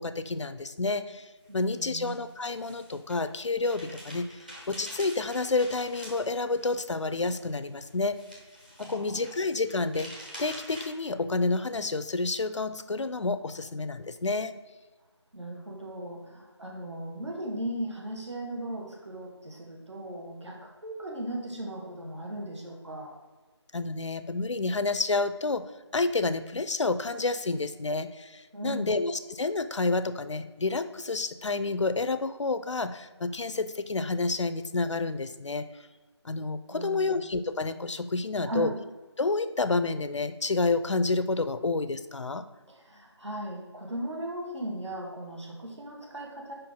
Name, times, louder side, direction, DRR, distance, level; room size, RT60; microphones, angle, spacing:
voice 1, 0.0-8.2 8.8-10.1 10.4-14.5 23.7-25.6 25.9-35.7 36.2-38.7 39.2-42.4, left 3 dB, 80° left, 12 dB, 0.5 m, -29 dB
sound 1, 1.4-10.9, equal, 15° right, 0.8 m, -47 dB
voice 2, 1.5-2.1 8.8-9.2 15.3-23.2 28.5-29.0 36.7-37.2 38.4-38.8 42.7-46.5, right 1 dB, 70° right, 0 dB, 1.9 m, -37 dB
5.1 x 4.5 x 5.5 m, 1.3 s
figure-of-eight pair, 175°, 15 cm